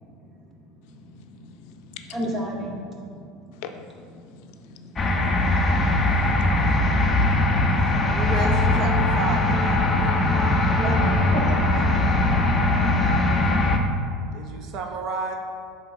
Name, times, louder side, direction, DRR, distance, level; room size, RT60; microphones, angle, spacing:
voice 1, 0.9-2.2 3.5-8.2, left 6 dB, 70° left, 6 dB, 0.4 m, -46 dB
voice 2, 2.1-3.6 4.6-5.2 10.5-12.0 12.8-13.1, right 1 dB, 20° right, -2 dB, 1.1 m, -34 dB
sound 1, 5.0-13.8, left 2 dB, 20° left, 0.6 m, -21 dB
voice 3, 8.1-10.3 14.3-15.3, right 3 dB, 50° right, 3 dB, 0.7 m, -32 dB
Wind instrument woodwind instrument, 8.2-12.5, left 1 dB, 35° right, 1.4 m, -34 dB
11.0 x 3.7 x 2.7 m, 2.3 s
supercardioid pair, 135°, 0 cm